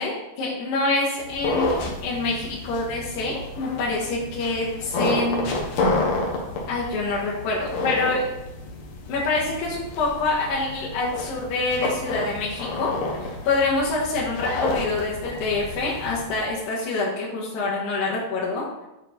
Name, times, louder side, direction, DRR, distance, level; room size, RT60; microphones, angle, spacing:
voice 1, 0.0-1.7 2.0-5.5 6.7-8.2 9.1-12.9 13.2-18.7, left 3 dB, 80° left, -8 dB, 3.5 m, -26 dB
sound 1, 1.2-16.5, left 2 dB, 60° left, 1.9 m, -30 dB
9.3 x 5.3 x 4.1 m, 0.93 s
omnidirectional pair, 4.7 m